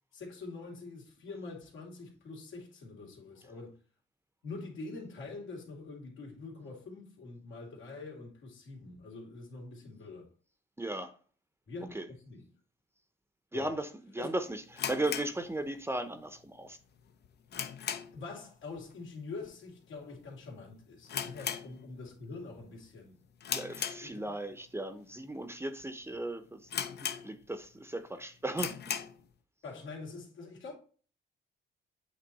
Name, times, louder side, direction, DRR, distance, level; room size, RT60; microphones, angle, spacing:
voice 1, 0.1-3.8 4.4-10.3 11.7-12.0 12.2-12.5 13.5-13.8 14.2-14.3 18.1-23.2 24.0-24.3 29.6-30.7, left 3 dB, 80° left, 2.6 m, -45 dB
voice 2, 10.8-11.1 11.9-12.0 13.5-13.9 14.1-16.8 23.5-26.6 27.0-28.8, right 1 dB, 10° right, 0.7 m, -36 dB
sound 1, 14.7-16.1 16.4-16.5 17.0-18.3 18.6-18.9 19.2-19.3 20.0-20.3 20.5-20.6 21.0-22.2 22.6-22.9 23.4-24.5 25.1-25.2 25.8-25.9 26.1-26.2 26.7-27.7 28.0-28.1 28.5-29.2, left 8 dB, 55° left, 0.7 m, -37 dB
8.4 x 3.1 x 4.1 m
cardioid pair, 90°, 20 cm